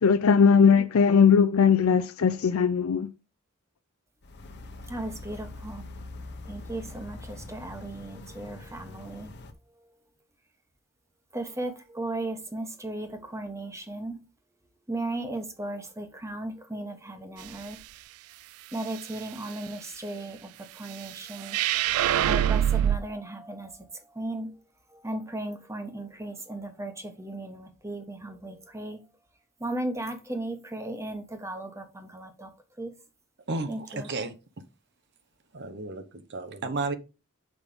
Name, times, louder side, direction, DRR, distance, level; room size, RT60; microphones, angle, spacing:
voice 1, 0.0-3.1, left 6 dB, 80° left, 0.5 m, -19 dB
sound 1, 4.2-9.5, left 2 dB, 55° left, 1.0 m, -43 dB
voice 2, 4.9-5.9 6.4-9.3 9.8-9.9 11.3-14.3 14.9-17.8 18.7-21.7 22.1-24.6 24.9-29.0 29.6-33.0 33.7-34.1, right 2 dB, 15° right, 1.2 m, -36 dB
sound 2, 21.5-23.0, right 10 dB, 85° right, 0.3 m, -23 dB
voice 3, 33.5-34.3 35.5-36.9, right 3 dB, 55° right, 1.0 m, -33 dB
6.3 x 5.4 x 5.0 m
head